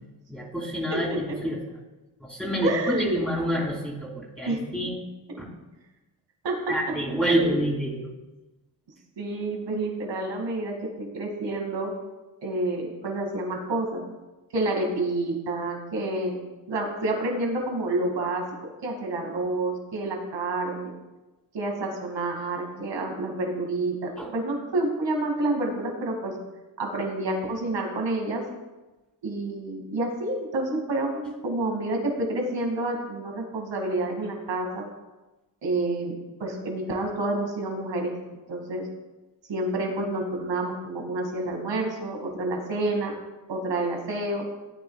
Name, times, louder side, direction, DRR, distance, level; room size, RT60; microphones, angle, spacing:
voice 1, 0.3-1.6 2.2-5.0 5.4-5.5 6.7-8.1 24.2-24.3, right 1 dB, 5° right, -8 dB, 3.0 m, -28 dB
voice 2, 2.6-3.2 4.4-4.6 6.4-6.6 7.2-7.6 9.2-11.9 12.4-14.0 14.5-16.4 16.7-18.5 18.8-20.9 21.5-26.4 26.8-28.4 29.2-34.8 35.6-38.1 38.5-38.9 39.5-43.2 43.5-44.4, right 2 dB, 80° right, 2 dB, 2.4 m, -28 dB
16.0 x 9.8 x 2.4 m, 1.1 s
cardioid pair, 60°, 43 cm